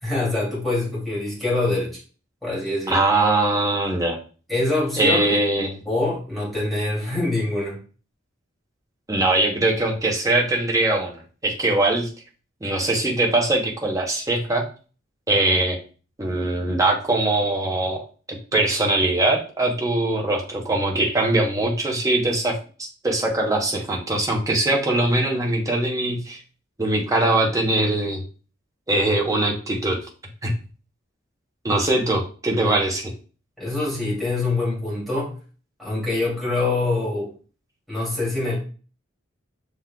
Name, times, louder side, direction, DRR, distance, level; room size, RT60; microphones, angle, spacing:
voice 1, 0.0-1.9 2.4-3.0 4.5-5.3 5.9-7.8 33.6-35.3 35.8-37.3 37.9-38.6, left 2 dB, ahead, -7 dB, 2.5 m, -24 dB
voice 2, 2.9-4.2 5.0-5.8 9.1-11.1 11.4-12.1 12.6-14.6 15.3-15.8 16.2-18.0 18.5-26.4 26.8-28.2 28.9-30.0 30.4-30.6 31.6-33.1, right 2 dB, 15° right, 0 dB, 0.8 m, -21 dB
6.1 x 3.7 x 2.2 m, 0.38 s
head